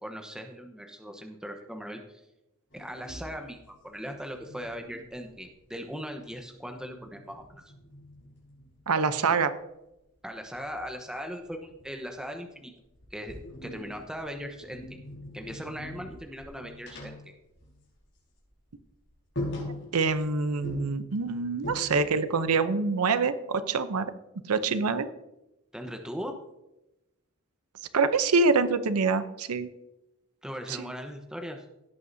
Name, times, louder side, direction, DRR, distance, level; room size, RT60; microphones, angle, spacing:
voice 1, 0.0-2.2 2.7-7.6 10.2-12.7 13.1-15.0 15.3-17.3 25.7-26.4 30.4-31.6, equal, 5° right, 4 dB, 1.0 m, -39 dB
sound 1, 2.7-5.8 6.2-9.1 10.4-12.5 12.9-18.2 18.4-18.6 19.0-19.1 19.4-20.3 20.6-22.3, left 1 dB, 55° left, 4.7 m, -42 dB
voice 2, 8.9-9.5 19.9-24.1 24.5-25.1 27.9-29.7 30.7-30.9, right 4 dB, 85° right, 12 dB, 0.7 m, -25 dB
17.0 x 8.5 x 2.7 m, 0.92 s
head